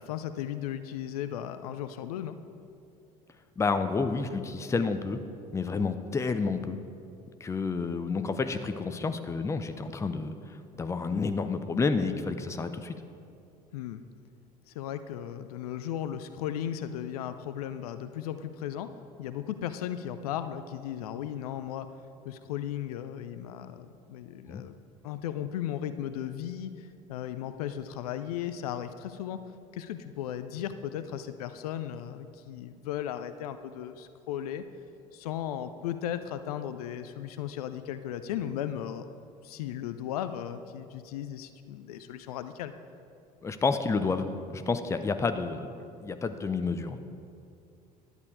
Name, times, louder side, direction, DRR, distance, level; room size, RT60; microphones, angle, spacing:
voice 1, 0.0-2.4 13.7-14.0 14.7-18.9 19.2-21.9 22.2-24.8 25.0-29.4 29.7-34.6 35.1-39.1 39.4-42.7, left 10 dB, 60° left, 11 dB, 0.5 m, -36 dB
voice 2, 3.6-5.2 5.5-6.8 7.4-10.4 10.7-12.9 24.5-24.6 43.4-45.7 46.0-47.0, left 4 dB, 15° left, 9 dB, 0.5 m, -30 dB
11.0 x 8.2 x 4.8 m, 2.5 s
figure-of-eight pair, 65°, 21 cm